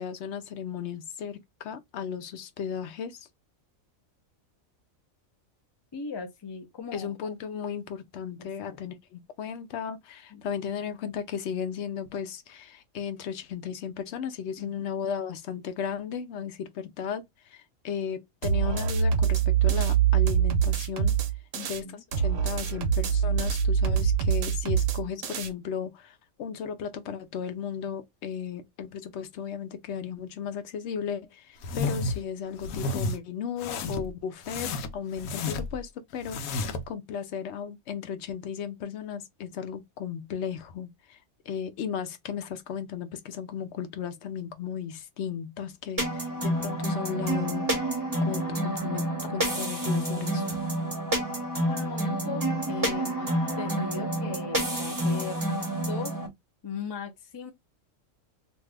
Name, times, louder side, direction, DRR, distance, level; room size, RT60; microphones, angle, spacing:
voice 1, 0.0-3.3 6.9-21.2 21.7-41.2 41.5-50.6, left 7 dB, 65° left, 0.8 m, -35 dB
voice 2, 5.9-7.1 8.4-8.8 10.3-10.4 14.6-14.8 21.5-22.0 51.7-55.4 55.9-56.2 56.6-57.5, left 5 dB, 40° left, 0.3 m, -38 dB
sound 1, 18.4-21.8 22.1-25.5, right 8 dB, 70° right, 1.0 m, -24 dB
sound 2, 31.6-32.2 32.6-33.2 33.6-34.1 34.5-35.8 36.2-36.9, left 3 dB, 90° left, 1.0 m, -31 dB
sound 3, 46.0-56.3, right 1 dB, 20° right, 0.7 m, -29 dB
2.6 x 2.4 x 3.2 m
omnidirectional pair, 1.4 m